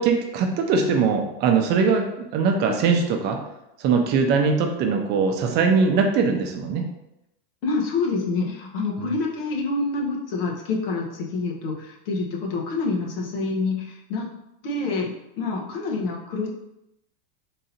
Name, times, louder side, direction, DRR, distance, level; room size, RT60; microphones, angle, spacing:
voice 1, 0.0-3.4 3.8-6.8 9.0-9.1, right 5 dB, 35° right, 3 dB, 0.6 m, -21 dB
voice 2, 7.6-14.3 14.6-16.5, left 3 dB, 80° left, -1 dB, 1.1 m, -27 dB
3.8 x 2.7 x 4.2 m, 0.85 s
supercardioid pair, 140°, 29 cm